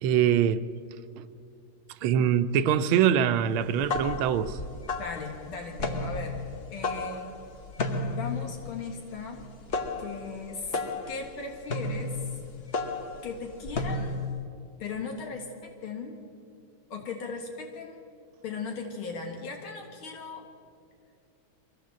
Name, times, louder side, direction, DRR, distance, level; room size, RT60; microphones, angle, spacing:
voice 1, 0.0-0.6 1.2-1.3 2.0-4.6, right 9 dB, 85° right, 11 dB, 1.5 m, -23 dB
sound 1, 3.6-14.4, left 3 dB, 40° left, 0.9 m, -33 dB
voice 2, 5.0-6.4 6.7-7.3 8.1-9.5 10.0-10.8 11.1-12.2 13.2-14.2 14.8-16.2 16.9-18.0 18.4-20.5, left 4 dB, 85° left, 2 dB, 2.5 m, -37 dB
24.0 x 16.0 x 7.5 m, 2.5 s
omnidirectional pair, 2.2 m